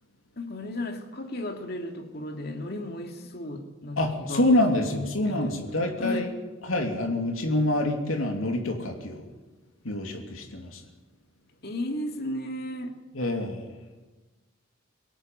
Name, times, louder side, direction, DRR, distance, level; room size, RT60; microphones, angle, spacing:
voice 1, 0.4-4.5 4.8-5.5 6.0-6.3 11.6-13.0, left 1 dB, 50° left, 5 dB, 2.5 m, -34 dB
voice 2, 4.0-6.3 6.6-9.2 9.8-10.8 13.1-13.7, left 1 dB, 85° left, 3 dB, 2.9 m, -26 dB
24.0 x 17.0 x 9.4 m, 1.2 s
head